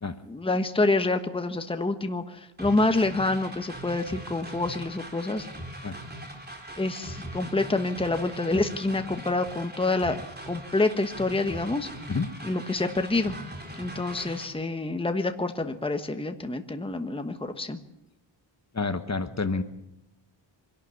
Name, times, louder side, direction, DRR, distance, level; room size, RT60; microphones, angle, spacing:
voice 1, 0.2-5.5 6.8-10.2 10.5-11.9 12.4-13.4 13.8-17.8, left 2 dB, 10° left, 7 dB, 1.2 m, -27 dB
sound 1, 2.6-14.4, right 1 dB, 20° right, 3.9 m, -41 dB
voice 2, 18.7-19.6, left 4 dB, 35° left, 9 dB, 1.3 m, -28 dB
25.0 x 12.0 x 9.7 m, 0.88 s
wide cardioid pair, 125°, 47 cm